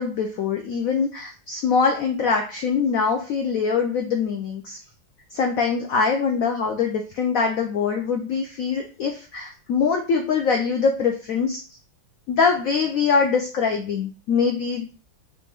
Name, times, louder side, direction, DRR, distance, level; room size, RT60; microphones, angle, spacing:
voice 1, 0.0-4.8 5.3-11.6 12.3-14.9, left 5 dB, 80° left, 3 dB, 0.7 m, -23 dB
4.2 x 3.1 x 3.5 m, 0.36 s
omnidirectional pair, 2.1 m